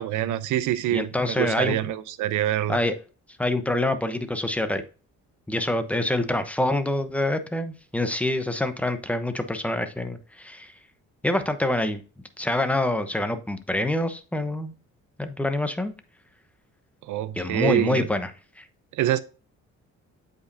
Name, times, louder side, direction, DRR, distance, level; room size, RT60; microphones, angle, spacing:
voice 1, 0.0-2.8 17.0-18.1 18.9-19.2, right 12 dB, 85° right, 0.7 m, -25 dB
voice 2, 0.9-1.7 2.7-2.9 3.4-4.8 5.5-10.7 11.2-12.0 12.4-14.7 15.2-15.9 17.4-18.3 18.6-18.7, left 1 dB, 5° left, 0.9 m, -26 dB
8.1 x 5.2 x 2.7 m
cardioid pair, 90°, 30 cm